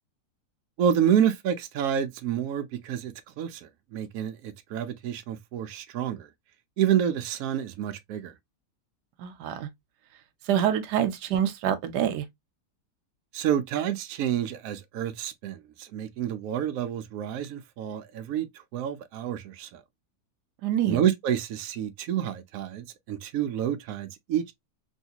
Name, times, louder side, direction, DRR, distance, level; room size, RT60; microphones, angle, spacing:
voice 1, 0.8-6.3 6.8-8.3 13.3-18.5 18.7-19.8 20.9-24.5, right 9 dB, 70° right, 0.9 m, -28 dB
voice 2, 9.2-9.7 10.5-12.2 20.6-21.0, right 10 dB, 85° right, 1.2 m, -26 dB
3.1 x 2.8 x 2.7 m
omnidirectional pair, 1.7 m